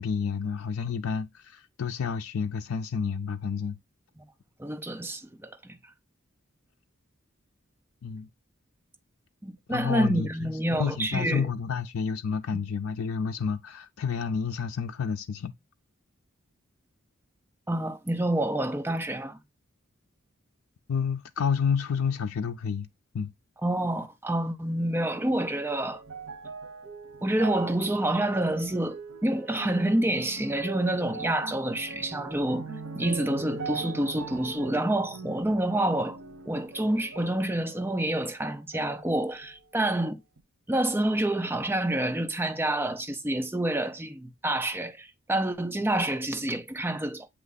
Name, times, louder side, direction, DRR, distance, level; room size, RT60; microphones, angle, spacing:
voice 1, 0.0-3.8 8.0-8.3 9.7-15.5 20.9-22.9 23.1-23.3, left 6 dB, 85° left, 0.4 m, -30 dB
voice 2, 4.6-5.8 9.4-11.5 17.7-19.4 23.6-26.0 27.2-32.7 33.0-36.2 36.5-40.2 40.7-47.3, right 1 dB, 10° right, 0.6 m, -28 dB
sound 1, 24.9-38.4 38.7-39.7 40.4-40.5, right 4 dB, 75° right, 1.0 m, -41 dB
8.3 x 2.9 x 3.9 m
head